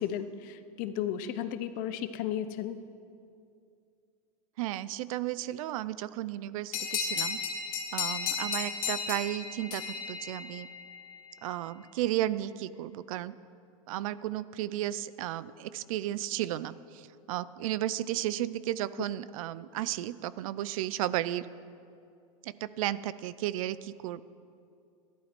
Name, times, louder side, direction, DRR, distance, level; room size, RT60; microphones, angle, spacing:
voice 1, 0.0-2.8, left 10 dB, 50° left, 12 dB, 0.8 m, -34 dB
voice 2, 4.6-7.4 7.9-10.7 11.4-13.3 13.9-21.5 22.4-24.2, right 13 dB, 70° right, 17 dB, 0.5 m, -34 dB
sound 1, 6.7-11.0, left 6 dB, 70° left, 1.9 m, -34 dB
13.5 x 11.5 x 4.5 m, 2.4 s
hypercardioid pair, 110°, 18 cm